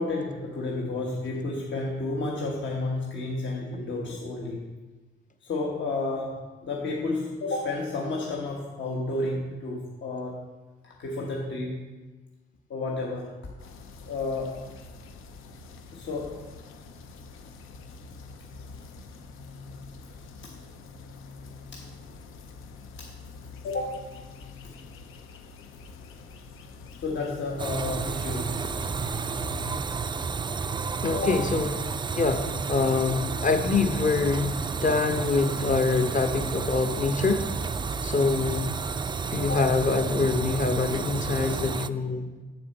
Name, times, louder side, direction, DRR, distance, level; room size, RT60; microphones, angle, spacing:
voice 1, 0.0-4.7 5.4-10.4 10.8-11.8 12.7-13.4 14.1-14.7 15.9-16.5 20.4-20.5 21.7-21.9 23.0-23.1 23.6-24.2 27.0-28.8 31.1-31.4 39.4-39.7, left 2 dB, 60° left, -2 dB, 1.3 m, -31 dB
sound 1, 13.6-29.8, left 3 dB, 75° left, 0.8 m, -45 dB
sound 2, 27.6-41.9, right 5 dB, 20° right, 0.3 m, -31 dB
voice 2, 31.0-31.7 32.1-37.5 38.0-38.7 39.3-42.3, left 4 dB, 40° left, 6 dB, 0.9 m, -25 dB
7.2 x 6.6 x 4.1 m, 1.2 s
supercardioid pair, 60°, 21 cm